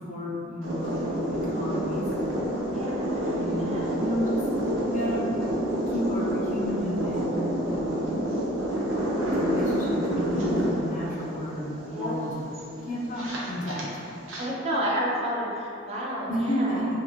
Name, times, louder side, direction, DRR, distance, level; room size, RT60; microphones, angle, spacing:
voice 1, 0.1-2.1 3.3-5.5 5.9-8.0 9.2-12.3 12.9-13.9 16.3-16.8, equal, 40° left, -5 dB, 0.5 m, -32 dB
sound 1, 0.6-14.4, equal, 90° right, 0.6 m, -28 dB
voice 2, 2.7-3.3 3.6-4.0 11.9-12.2 14.4-16.9, equal, 30° right, -4 dB, 0.4 m, -30 dB
2.7 x 2.5 x 2.5 m, 2.6 s
head